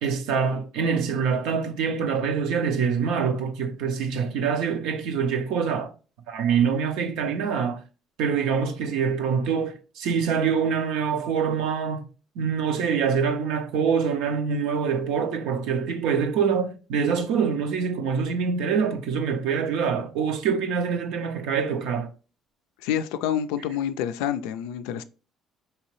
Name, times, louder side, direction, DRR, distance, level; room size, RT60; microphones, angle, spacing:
voice 1, 0.0-5.9 6.3-7.8 8.2-12.1 12.4-22.1, right 6 dB, 80° right, 0.5 m, -25 dB
voice 2, 22.8-25.0, left 10 dB, 85° left, 0.3 m, -27 dB
4.7 x 2.8 x 3.0 m
supercardioid pair, 75°, 0 cm